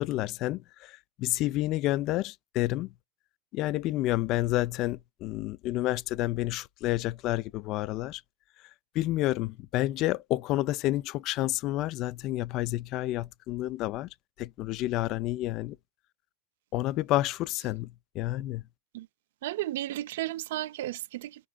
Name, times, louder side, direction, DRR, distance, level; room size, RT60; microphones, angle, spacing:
voice 1, 0.0-2.9 3.5-8.2 9.0-14.1 14.4-15.8 16.7-18.6, left 16 dB, 40° left, 0.3 m, -29 dB
voice 2, 19.4-21.5, right 15 dB, 75° right, 0.3 m, -34 dB
5.8 x 3.7 x 2.2 m
supercardioid pair, 150°, 0 cm